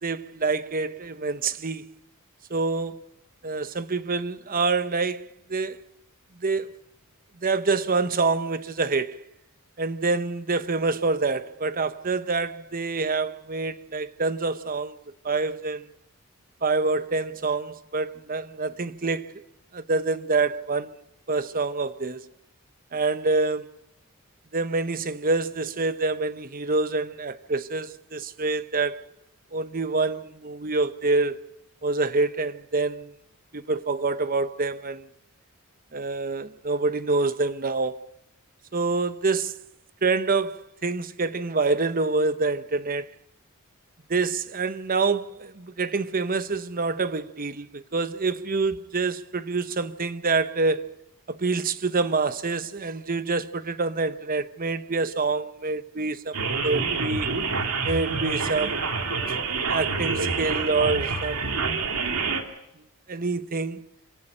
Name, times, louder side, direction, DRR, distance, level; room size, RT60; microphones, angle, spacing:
voice 1, 0.0-2.0 2.5-3.0 3.4-5.8 6.4-6.7 7.4-9.2 9.8-15.0 15.2-15.9 16.6-19.4 19.7-21.0 21.3-22.3 22.9-23.7 24.5-29.0 29.5-31.4 31.8-33.1 33.5-35.1 35.9-38.0 38.7-39.5 40.0-43.1 44.1-50.9 51.3-56.4 56.6-57.3 57.8-58.9 59.6-61.6 63.1-63.8, right 3 dB, 40° right, 0.9 m, -26 dB
sound 1, 56.3-62.4, right 4 dB, 85° right, 2.6 m, -27 dB
27.0 x 17.5 x 5.4 m
head